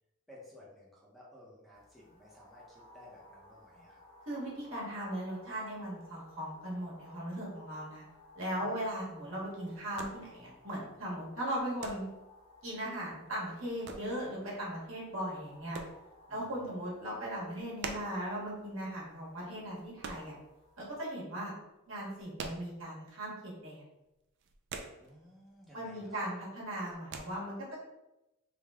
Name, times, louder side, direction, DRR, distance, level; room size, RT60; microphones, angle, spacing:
voice 1, 0.3-4.0 8.6-9.0 16.3-16.4 25.0-26.3, left 1 dB, ahead, -6 dB, 0.7 m, -56 dB
sound 1, 1.7-21.0, left 1 dB, 30° left, 1.1 m, -59 dB
voice 2, 4.3-8.0 8.4-12.1 12.6-15.8 16.3-20.3 20.8-21.5 21.9-23.8 25.7-27.8, right 1 dB, 75° right, -5 dB, 1.2 m, -38 dB
sound 2, 8.1-21.1 21.3-23.3 23.5-23.7 24.0-25.6 25.8-26.3 26.6-27.2, right 4 dB, 60° right, 0.4 m, -46 dB
3.3 x 2.2 x 3.4 m, 0.94 s
head